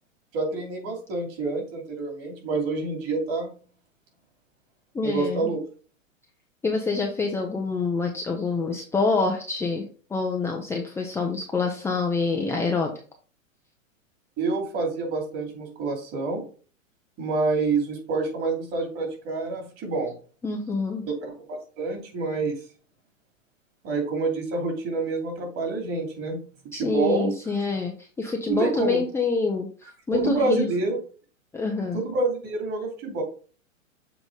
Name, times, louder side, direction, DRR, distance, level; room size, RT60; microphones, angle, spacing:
voice 1, 0.3-3.5 5.0-5.6 14.4-16.4 17.2-20.1 21.0-21.1 21.5-22.6 23.8-26.4 26.7-27.4 28.5-29.0 30.1-31.0 31.9-33.2, right 3 dB, 35° right, 2 dB, 2.7 m, -27 dB
voice 2, 4.9-5.5 6.6-9.8 10.1-12.9 20.4-21.1 26.7-30.7 31.5-32.0, left 4 dB, 5° left, 0 dB, 0.6 m, -26 dB
7.2 x 3.9 x 3.7 m, 0.39 s
hypercardioid pair, 115°, 40 cm